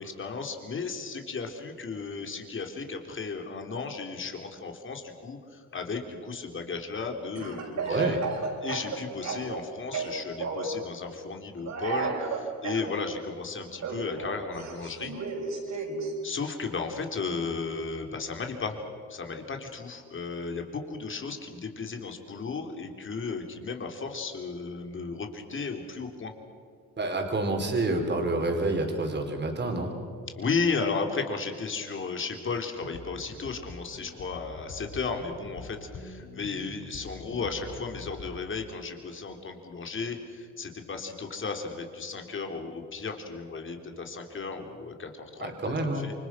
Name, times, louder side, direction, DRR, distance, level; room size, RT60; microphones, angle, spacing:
voice 1, 0.0-8.2 8.6-15.1 15.7-15.8 16.2-18.8 19.1-26.3 30.4-46.1, left 4 dB, 40° left, 4 dB, 3.7 m, -34 dB
Speech / Cough, 7.4-9.6 9.9-10.7 11.6-12.9 13.8-16.1, right 4 dB, 70° right, 6.8 m, -33 dB
voice 2, 7.9-8.2 27.0-29.9 45.4-46.0, right 2 dB, 35° right, 2 dB, 4.6 m, -28 dB
sound 1, 32.8-38.5, left 3 dB, 70° left, 3.7 m, -45 dB
28.5 x 25.0 x 6.2 m, 2.2 s
cardioid pair, 90°, 30 cm